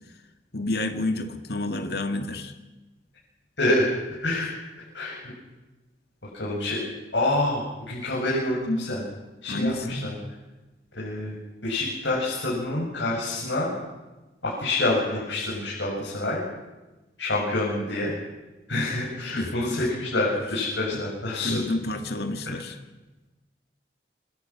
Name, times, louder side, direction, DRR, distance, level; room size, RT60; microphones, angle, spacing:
voice 1, 0.5-2.5 9.4-10.1 19.4-19.9 20.9-21.0 21.4-22.8, left 2 dB, 60° left, 6 dB, 2.4 m, -30 dB
voice 2, 3.6-3.9 4.2-4.5 4.9-5.2 6.3-6.8 7.1-7.6 7.9-9.0 9.4-10.1 10.9-11.3 11.6-13.7 14.4-16.4 17.2-18.1 18.7-21.6, left 2 dB, 90° left, -5 dB, 7.9 m, -26 dB
28.0 x 25.0 x 6.2 m, 1.1 s
head